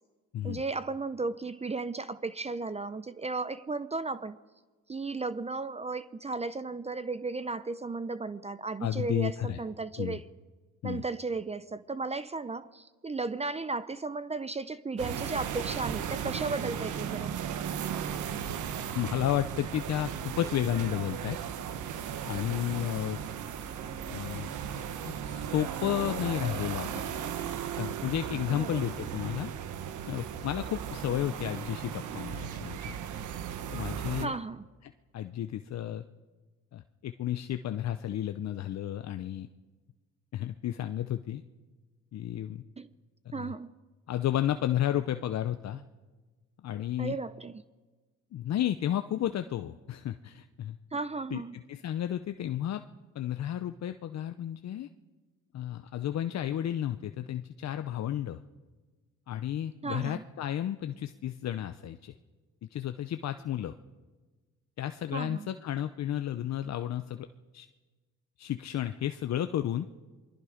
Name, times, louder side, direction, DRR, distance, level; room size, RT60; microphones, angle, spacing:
voice 1, 0.4-4.4 4.9-10.3 10.8-17.3 28.5-29.0 34.2-34.7 42.8-42.9 43.3-43.8 47.0-47.6 50.9-51.5 59.8-60.2 65.1-65.5, right 3 dB, 20° right, 14 dB, 0.6 m, -35 dB
voice 2, 8.8-9.6 10.0-10.2 10.8-11.0 18.9-21.4 22.3-23.2 24.1-24.5 25.0-27.1 27.8-29.5 30.0-33.0 33.7-34.4 35.1-36.0 36.7-39.5 40.3-41.4 42.1-42.6 43.4-43.5 44.1-45.8 46.6-47.2 48.3-50.8 51.3-51.4 51.7-52.8 53.1-54.9 55.5-58.4 59.3-62.1 62.7-63.7 64.8-67.3 67.5-67.7 68.4-69.9, left 11 dB, 60° left, 9 dB, 0.8 m, -32 dB
sound 1, 15.0-34.3, right 8 dB, 80° right, 1.3 m, -36 dB
27.5 x 21.5 x 5.1 m, 1.3 s
cardioid pair, 90°, 30 cm